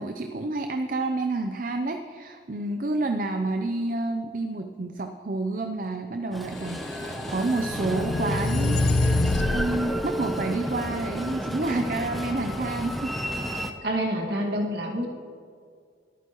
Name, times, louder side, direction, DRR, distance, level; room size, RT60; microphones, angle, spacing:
voice 1, 0.0-13.1, right 2 dB, 45° right, 5 dB, 0.5 m, -29 dB
Train, 6.3-13.7, equal, ahead, 0.6 m, -32 dB
sound 1, 6.8-9.7, left 2 dB, 60° left, 0.5 m, -26 dB
sound 2, 8.1-11.3, right 1 dB, 20° left, 1.3 m, -36 dB
voice 2, 13.5-15.1, equal, 65° right, 0 dB, 2.0 m, -28 dB
21.5 x 9.2 x 3.0 m, 2.2 s
head